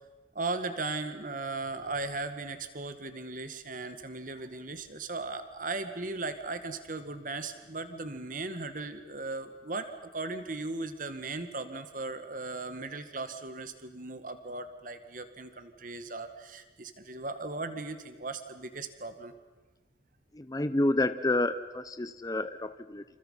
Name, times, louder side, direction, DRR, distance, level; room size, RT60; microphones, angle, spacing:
voice 1, 0.4-19.3, right 3 dB, 45° right, 9 dB, 1.9 m, -37 dB
voice 2, 20.3-23.0, left 2 dB, 20° left, 11 dB, 0.8 m, -29 dB
28.5 x 28.0 x 5.7 m, 1.2 s
head